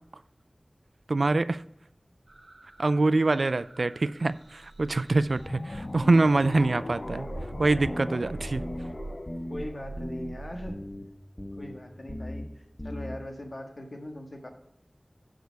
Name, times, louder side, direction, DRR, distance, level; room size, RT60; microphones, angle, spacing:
voice 1, 1.1-1.6 2.8-7.3 7.6-8.7, right 2 dB, 80° right, 16 dB, 0.3 m, -24 dB
sound 1, 2.3-6.2 6.5-10.7, right 2 dB, 65° right, 1.0 m, -45 dB
sound 2, 5.3-10.5, left 2 dB, 50° left, 0.3 m, -39 dB
sound 3, 7.8-8.2 8.5-8.9 9.3-9.6 10.0-10.3 10.7-11.0 11.4-11.7 12.1-12.4 12.8-13.2, equal, 15° left, 1.3 m, -37 dB
voice 2, 9.5-10.8 11.6-14.5, left 1 dB, 65° left, 3 dB, 1.6 m, -40 dB
11.5 x 5.1 x 4.6 m, 0.81 s
wide cardioid pair, 50°, 0 cm